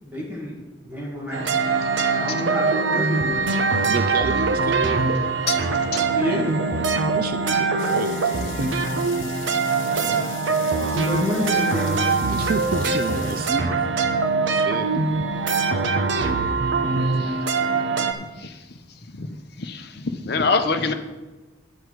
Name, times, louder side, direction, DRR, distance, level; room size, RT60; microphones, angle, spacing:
voice 1, 0.0-1.5 2.1-3.5 6.1-6.5 9.8-10.3 10.9-12.1, equal, 10° right, -4 dB, 2.0 m, -29 dB
sound 1, 1.3-18.1, right 4 dB, 65° right, 0.8 m, -23 dB
voice 2, 3.9-5.1 6.3-8.7 12.3-13.7 14.5-14.9, right 5 dB, 45° right, 10 dB, 0.3 m, -30 dB
sound 2, 7.8-13.5, left 8 dB, 75° left, 1.0 m, -40 dB
voice 3, 19.6-20.9, left 4 dB, 50° left, 7 dB, 0.8 m, -24 dB
10.0 x 8.1 x 4.7 m, 1.2 s
head